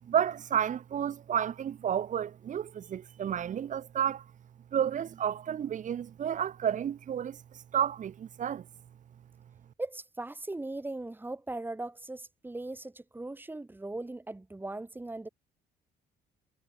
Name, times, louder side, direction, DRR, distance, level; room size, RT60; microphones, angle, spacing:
voice 1, 0.1-4.2 4.7-8.7, right 9 dB, 50° right, 2.2 m, -31 dB
voice 2, 9.8-15.3, right 2 dB, 10° right, 7.4 m, -39 dB
cardioid pair, 110°, 17 cm